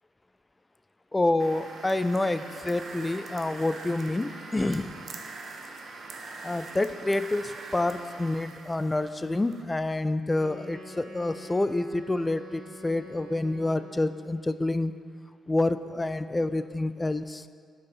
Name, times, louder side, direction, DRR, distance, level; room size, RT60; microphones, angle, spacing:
voice 1, 1.1-4.9 6.4-14.9 15.5-17.5, left 2 dB, 20° left, 12 dB, 0.3 m, -28 dB
sound 1, 1.4-9.6, right 3 dB, 55° right, 0.6 m, -43 dB
Wind instrument woodwind instrument, 10.3-14.4, equal, 40° right, 1.6 m, -46 dB
4.7 x 4.7 x 5.5 m, 2.1 s
hypercardioid pair, 50°, 0 cm